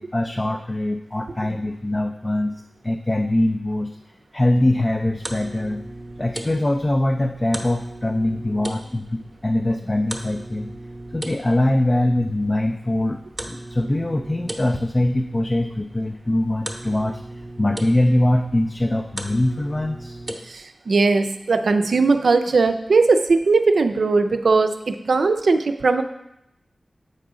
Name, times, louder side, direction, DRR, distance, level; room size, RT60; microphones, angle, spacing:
voice 1, 0.0-2.5 2.8-3.9 4.3-5.8 6.2-10.7 11.1-13.2 13.5-17.2 17.6-20.2, left 1 dB, 25° left, 4 dB, 0.4 m, -22 dB
sound 1, 4.8-20.4, right 1 dB, 15° right, 0.8 m, -38 dB
voice 2, 20.5-26.0, right 3 dB, 80° right, 7 dB, 0.4 m, -19 dB
7.8 x 4.8 x 3.7 m, 0.84 s
wide cardioid pair, 80°, 0 cm